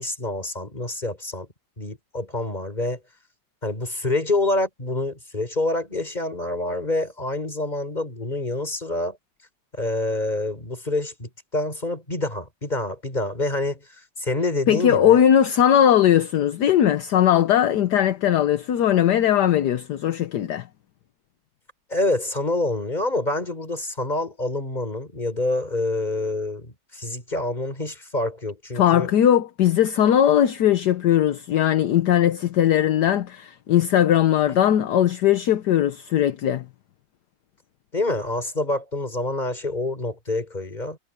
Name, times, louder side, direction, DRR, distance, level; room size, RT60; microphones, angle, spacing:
voice 1, 0.0-1.5 1.8-3.0 3.6-9.2 9.7-15.2 21.9-29.1 37.9-41.0, left 2 dB, 20° left, 4.8 m, -27 dB
voice 2, 14.7-20.7 28.7-36.7, left 10 dB, 65° left, 1.4 m, -19 dB
omnidirectional pair, 2.1 m